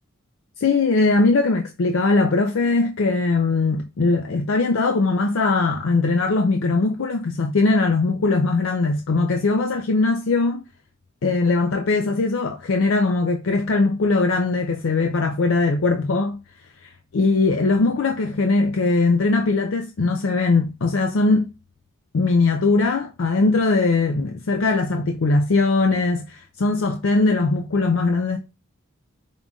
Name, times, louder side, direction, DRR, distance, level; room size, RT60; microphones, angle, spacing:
voice 1, 0.6-10.6 11.2-16.4 16.8-21.5 22.1-28.4, left 3 dB, 70° left, 0.5 m, -20 dB
5.3 x 2.6 x 3.5 m
head